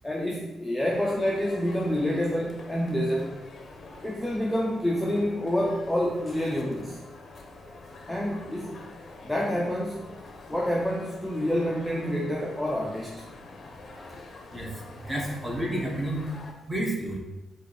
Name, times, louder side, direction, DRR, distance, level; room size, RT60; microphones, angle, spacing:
voice 1, 0.0-3.4 4.0-7.0 8.1-8.8 9.2-10.1 10.5-13.2, equal, 5° left, -3 dB, 0.5 m, -28 dB
sound 1, 0.9-16.5, left 3 dB, 45° left, 0.7 m, -46 dB
voice 2, 14.5-16.3 16.7-17.2, right 1 dB, 10° right, -2 dB, 1.0 m, -30 dB
4.8 x 2.5 x 4.1 m, 1.1 s
cardioid pair, 105°, 0 cm